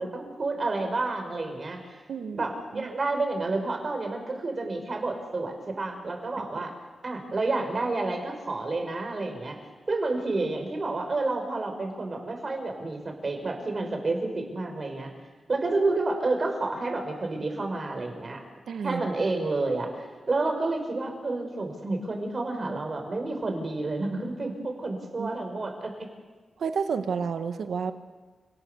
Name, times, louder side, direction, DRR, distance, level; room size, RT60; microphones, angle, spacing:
voice 1, 0.0-2.0 2.3-6.7 7.0-9.6 9.9-15.1 15.5-18.4 18.8-25.9, right 2 dB, 45° right, 4 dB, 5.7 m, -30 dB
voice 2, 2.1-2.4 2.7-2.9 6.4-6.5 18.7-19.0 25.2-25.3 26.6-27.9, right 6 dB, 80° right, 9 dB, 1.5 m, -30 dB
29.5 x 18.5 x 7.1 m, 1.4 s
cardioid pair, 75°, 0 cm